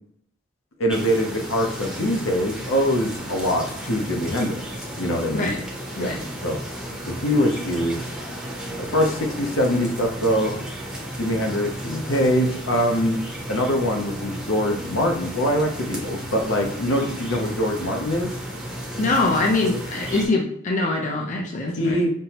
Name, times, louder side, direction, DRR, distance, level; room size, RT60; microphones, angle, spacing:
voice 1, 0.8-5.5 6.0-6.1 6.4-6.6 7.1-8.1 8.8-10.5 11.2-13.2 13.5-18.3 21.8-22.1, equal, 80° left, 2 dB, 0.7 m, -23 dB
sound 1, 0.9-20.3, right 1 dB, 5° right, 0.7 m, -33 dB
voice 2, 19.0-22.0, left 2 dB, 40° left, 0 dB, 0.5 m, -23 dB
5.3 x 2.0 x 2.9 m, 0.69 s
head